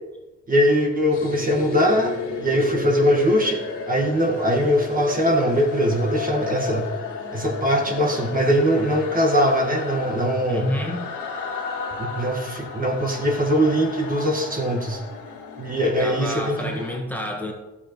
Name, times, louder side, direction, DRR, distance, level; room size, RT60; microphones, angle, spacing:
voice 1, 0.5-2.1 2.4-6.9 7.3-10.7 12.0-15.0 15.6-16.8, equal, 30° right, 1 dB, 1.7 m, -21 dB
sound 1, 1.1-17.0, left 5 dB, 90° left, 2.5 m, -33 dB
voice 2, 10.5-11.1 15.8-17.5, equal, 5° left, 0 dB, 1.7 m, -29 dB
13.5 x 7.9 x 3.1 m, 1.1 s
cardioid pair, 90°, 30 cm